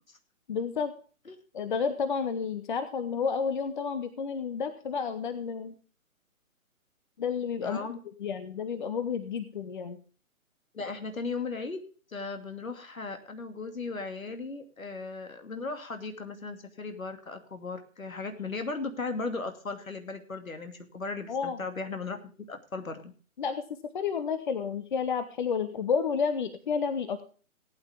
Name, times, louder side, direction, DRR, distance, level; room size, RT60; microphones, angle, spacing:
voice 1, 0.5-0.9 1.5-5.7 7.2-10.0 21.3-21.6 23.4-23.6 23.9-27.2, left 6 dB, 35° left, 11 dB, 0.9 m, -31 dB
voice 2, 7.6-8.0 10.7-11.8 12.1-23.1, left 3 dB, 70° left, 7 dB, 2.6 m, -37 dB
17.5 x 9.5 x 3.5 m, 0.38 s
figure-of-eight pair, 140°, 42 cm